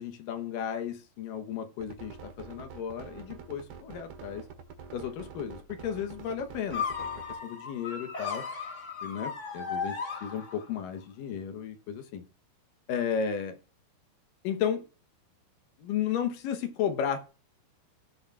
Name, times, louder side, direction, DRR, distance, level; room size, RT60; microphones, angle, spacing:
voice 1, 0.0-4.4 4.9-7.1 7.4-8.4 9.0-12.2 12.9-13.6 14.4-14.8 15.8-17.3, left 8 dB, 70° left, 2.4 m, -34 dB
sound 1, 1.8-7.4, right 6 dB, 90° right, 3.7 m, -46 dB
sound 2, 6.7-10.9, left 5 dB, 45° left, 0.9 m, -36 dB
17.0 x 6.6 x 2.4 m
omnidirectional pair, 4.6 m